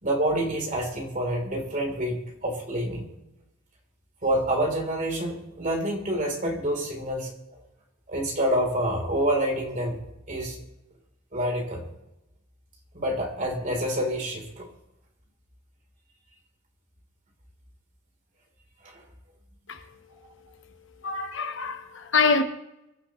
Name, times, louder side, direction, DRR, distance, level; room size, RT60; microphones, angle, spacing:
voice 1, 0.0-3.1 4.2-7.6 8.1-10.0 10.3-10.6 11.3-11.8 12.9-14.7 18.8-19.0, right 1 dB, 35° right, 3.8 m, -27 dB
voice 2, 21.0-22.4, left 4 dB, 60° left, 1.1 m, -25 dB
25.0 x 12.0 x 3.2 m
head